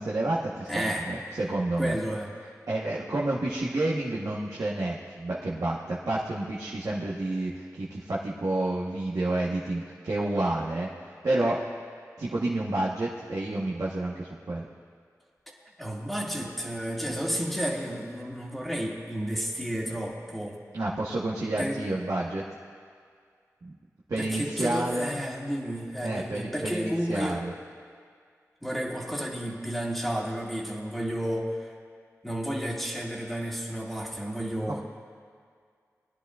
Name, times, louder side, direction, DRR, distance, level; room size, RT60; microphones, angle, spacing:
voice 1, 0.0-2.0 2.7-11.6 12.2-14.6 20.7-22.4 23.6-23.7 24.1-25.2 26.0-27.5, right 2 dB, 70° right, -5 dB, 1.2 m, -29 dB
voice 2, 0.7-1.1 1.8-2.3 15.8-20.6 21.6-21.8 24.2-27.4 28.6-31.7 32.2-34.8, equal, ahead, -2 dB, 2.0 m, -32 dB
20.0 x 10.5 x 2.5 m, 2.1 s
cardioid pair, 45°, 6 cm